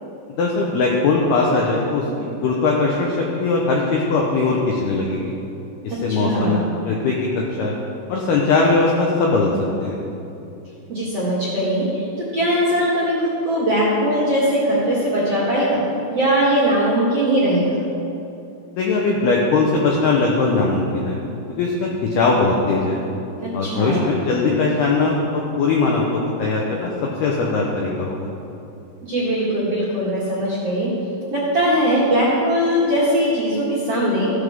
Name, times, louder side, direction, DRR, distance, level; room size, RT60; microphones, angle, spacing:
voice 1, 0.3-5.3 5.8-6.6 6.9-7.7 8.1-9.5 9.8-10.0 18.8-21.2 21.6-21.9 22.2-23.0 23.5-28.3, left 3 dB, 85° left, -2 dB, 2.3 m, -20 dB
voice 2, 5.9-6.6 10.9-12.0 12.3-15.8 16.1-17.8 23.4-24.1 29.1-30.9 31.3-34.3, equal, 50° right, -8 dB, 1.9 m, -20 dB
14.5 x 12.0 x 3.7 m, 2.7 s
omnidirectional pair, 6.0 m